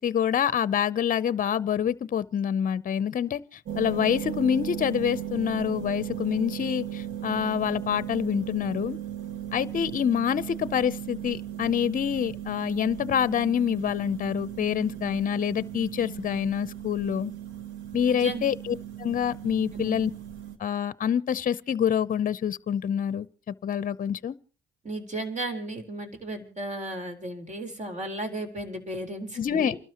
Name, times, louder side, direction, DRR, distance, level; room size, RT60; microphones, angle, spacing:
voice 1, 0.0-3.4 3.8-9.0 9.5-17.3 17.9-20.1 20.6-23.3 23.6-24.3 29.4-29.7, left 8 dB, 45° left, 0.7 m, -26 dB
sound 1, 3.7-20.6, right 11 dB, 80° right, 1.4 m, -37 dB
voice 2, 18.1-18.5 19.7-19.9 24.8-29.8, right 1 dB, 35° right, 4.1 m, -34 dB
29.0 x 12.5 x 3.0 m
cardioid pair, 90°, 20 cm